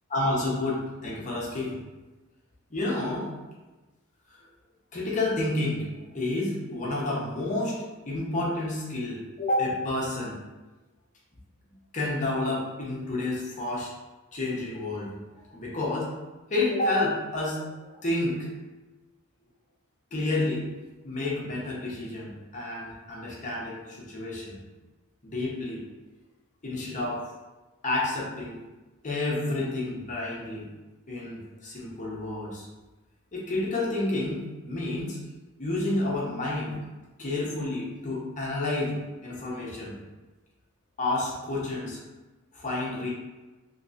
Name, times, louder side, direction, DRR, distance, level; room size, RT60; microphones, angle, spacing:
voice 1, 0.1-1.7 2.7-3.3 4.9-5.8 6.1-7.8 8.0-10.4 11.9-13.9 14.3-15.2 15.5-16.1 16.5-18.5 20.1-20.6 21.0-24.6 25.2-25.8 26.6-27.3 27.8-28.6 29.0-30.6 31.1-32.7 33.3-35.2 35.6-36.8 37.2-39.0 39.2-40.0 41.0-42.0 42.5-43.1, left 2 dB, 35° left, -5 dB, 0.9 m, -30 dB
3.3 x 3.2 x 2.8 m, 1.2 s
head